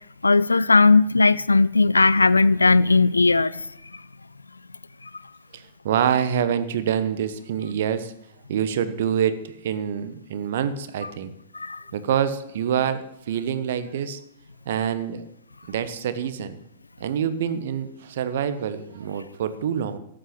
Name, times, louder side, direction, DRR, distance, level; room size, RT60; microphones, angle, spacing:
voice 1, 0.2-3.6 11.5-11.8, left 3 dB, 80° left, 0.4 m, -17 dB
voice 2, 5.5-8.1 8.5-11.3 11.9-14.2 14.6-15.2 15.7-16.6 17.0-20.0, right 8 dB, 55° right, 1.2 m, -26 dB
13.0 x 8.9 x 6.8 m
figure-of-eight pair, 100°, 0 cm